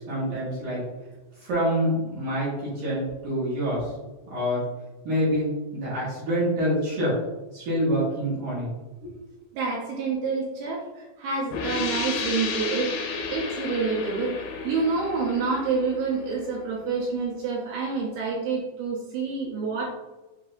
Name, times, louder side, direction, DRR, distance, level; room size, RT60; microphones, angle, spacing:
voice 1, 0.1-0.8 1.4-3.9 4.3-4.6 5.0-7.1 7.5-8.7 9.0-9.1, equal, 65° right, -8 dB, 2.0 m, -26 dB
voice 2, 9.5-12.9 13.3-14.3 14.6-19.9, right 4 dB, 80° right, -4 dB, 2.3 m, -28 dB
sound 1, 11.5-17.0, left 4 dB, 85° left, 2.8 m, -33 dB
7.2 x 2.7 x 2.5 m, 1.1 s
omnidirectional pair, 5.3 m